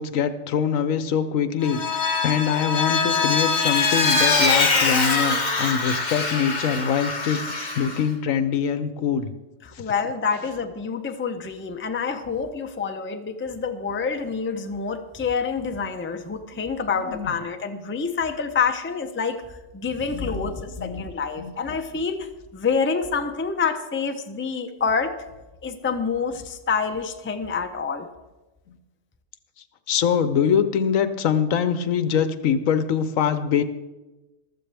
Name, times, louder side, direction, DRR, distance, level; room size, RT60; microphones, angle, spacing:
voice 1, 0.0-7.4 7.8-9.3 9.7-9.9 16.9-17.3 20.1-20.5 20.8-21.0 21.4-21.5 28.7-28.8 29.9-33.6, left 7 dB, 75° left, 11 dB, 1.2 m, -24 dB
Vehicle, 1.6-8.0, left 4 dB, 35° left, 1.3 m, -23 dB
voice 2, 9.6-19.4 19.7-25.1 25.6-28.1, left 5 dB, 15° left, 6 dB, 0.5 m, -27 dB
14.5 x 13.0 x 3.4 m, 1.1 s
omnidirectional pair, 1.4 m